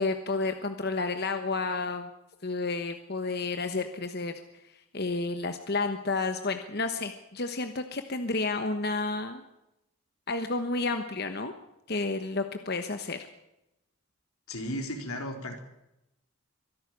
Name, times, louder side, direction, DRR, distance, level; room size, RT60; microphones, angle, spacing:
voice 1, 0.0-2.1 2.4-4.4 4.9-9.4 10.3-11.5 11.9-13.3, left 3 dB, 50° left, 7 dB, 1.2 m, -31 dB
voice 2, 14.5-15.6, equal, 90° left, 4 dB, 4.1 m, -35 dB
24.0 x 11.5 x 9.5 m, 0.88 s
head